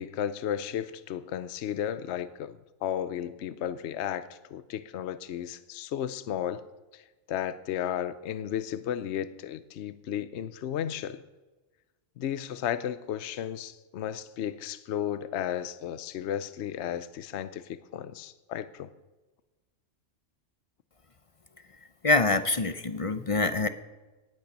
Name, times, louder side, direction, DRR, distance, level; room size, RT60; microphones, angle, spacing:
voice 1, 0.0-6.6 6.9-7.0 7.3-11.2 12.2-18.9, left 10 dB, 70° left, 13 dB, 0.9 m, -34 dB
voice 2, 22.0-23.7, left 3 dB, 35° left, 10 dB, 0.6 m, -25 dB
18.5 x 8.6 x 5.3 m, 1.2 s
omnidirectional pair, 1.2 m